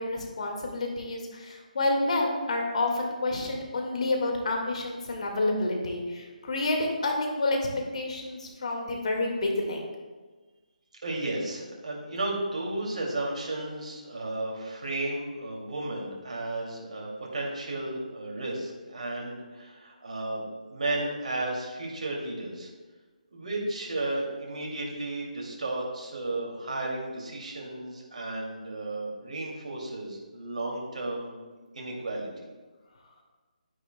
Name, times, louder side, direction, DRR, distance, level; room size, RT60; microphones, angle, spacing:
voice 1, 0.0-7.6 7.9-9.9, left 2 dB, 55° left, 1 dB, 1.8 m, -29 dB
voice 2, 11.0-22.7 23.3-31.4 31.7-32.3, right 2 dB, 60° right, -2 dB, 2.4 m, -33 dB
10.5 x 9.4 x 2.2 m, 1.3 s
figure-of-eight pair, 150°, 4 cm